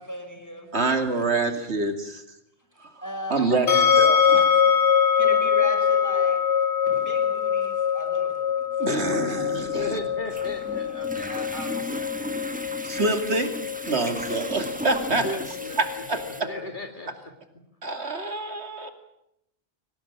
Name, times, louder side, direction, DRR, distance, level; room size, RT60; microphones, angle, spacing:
voice 1, 0.0-1.0 3.0-3.5 4.3-4.4 5.1-6.5 6.8-9.6, equal, 15° left, 4 dB, 5.6 m, -38 dB
voice 2, 0.7-2.2 2.8-2.9 3.3-3.7 3.9-4.5 8.8-10.0 12.8-13.5 13.9-15.2 15.8-16.5 17.8-18.9, right 3 dB, 75° right, 6 dB, 2.8 m, -26 dB
voice 3, 3.4-4.8 9.7-12.3 15.1-15.8 16.4-17.3, equal, 45° left, 3 dB, 2.5 m, -37 dB
sound 1, 3.7-16.7, left 8 dB, 85° left, 3.0 m, -24 dB
sound 2, 9.4-16.4, equal, 10° right, 1.4 m, -36 dB
24.0 x 18.5 x 9.0 m, 0.83 s
omnidirectional pair, 1.1 m